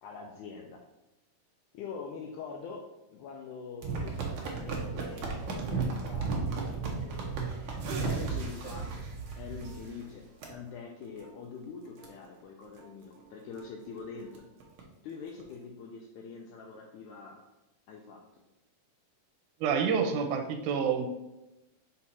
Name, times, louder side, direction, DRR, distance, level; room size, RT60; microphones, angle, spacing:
voice 1, 0.0-0.8 1.7-2.8 3.1-6.3 6.6-7.7 8.0-9.0 9.4-14.5 15.0-17.4 17.9-18.4, left 5 dB, 80° left, 1 dB, 2.0 m, -44 dB
sound 1, 3.8-10.0 10.4-10.5 11.0-11.3 11.6-11.7 12.0-12.1 12.6-12.8 13.2-13.3 13.6-13.7 14.0-14.8 15.4-15.5, right 4 dB, 70° right, 1.2 m, -34 dB
voice 2, 19.6-21.1, right 6 dB, 90° right, 5 dB, 2.2 m, -28 dB
5.3 x 4.3 x 4.1 m, 0.98 s
omnidirectional pair, 3.6 m